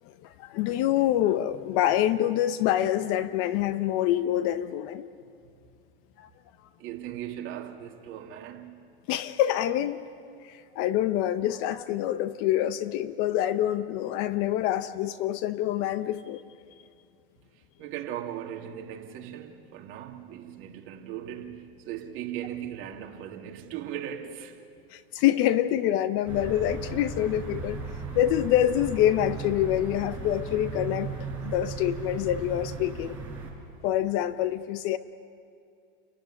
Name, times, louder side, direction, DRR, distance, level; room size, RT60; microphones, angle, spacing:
voice 1, 0.4-5.1 6.2-6.3 9.1-10.0 10.4-16.4 24.9-27.8 28.1-31.1 31.4-33.2 33.8-35.0, left 12 dB, 45° left, 0.9 m, -26 dB
voice 2, 6.8-8.8 17.8-24.6, right 10 dB, 40° right, 2.6 m, -38 dB
sound 1, 26.3-33.5, right 4 dB, 5° right, 7.0 m, -36 dB
29.0 x 15.5 x 9.9 m
supercardioid pair, 140°, 30 cm